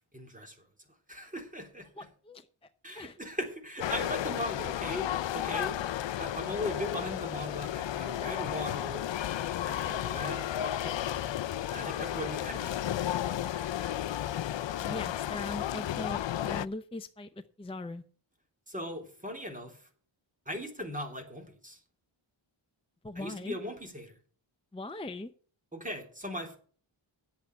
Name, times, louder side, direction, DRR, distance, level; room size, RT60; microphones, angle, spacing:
voice 1, 0.1-0.6 1.1-2.1 2.8-5.1 5.3-5.8 6.2-9.0 9.7-11.4 11.7-14.1 18.7-19.9 20.4-21.8 23.1-24.1 25.7-26.6, equal, 15° right, 3 dB, 3.4 m, -39 dB
voice 2, 2.0-2.5 2.9-3.2 14.8-17.3 17.6-18.0 23.0-23.6 24.7-25.3, left 2 dB, 10° left, 7 dB, 0.6 m, -40 dB
sound 1, 3.8-16.7, left 12 dB, 65° left, 0.5 m, -33 dB
10.0 x 8.4 x 8.1 m, 0.44 s
wide cardioid pair, 140°, 49 cm